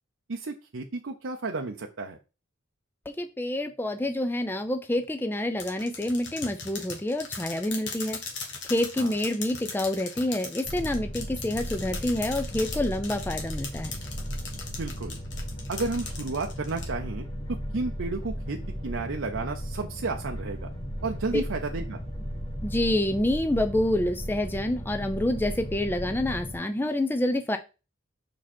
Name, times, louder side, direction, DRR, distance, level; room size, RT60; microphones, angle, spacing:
voice 1, 0.3-2.2 9.0-9.2 14.7-15.1 15.7-18.6 18.8-20.7 21.0-22.0, right 3 dB, 70° right, 3 dB, 0.6 m, -32 dB
voice 2, 3.1-8.2 8.6-14.0 21.3-21.4 22.6-27.6, left 1 dB, 10° left, 8 dB, 0.4 m, -27 dB
sound 1, 5.6-16.9, left 5 dB, 60° left, 1.7 m, -38 dB
sound 2, 10.6-26.5, equal, 30° left, 3.1 m, -36 dB
5.5 x 5.0 x 4.3 m, 0.31 s
head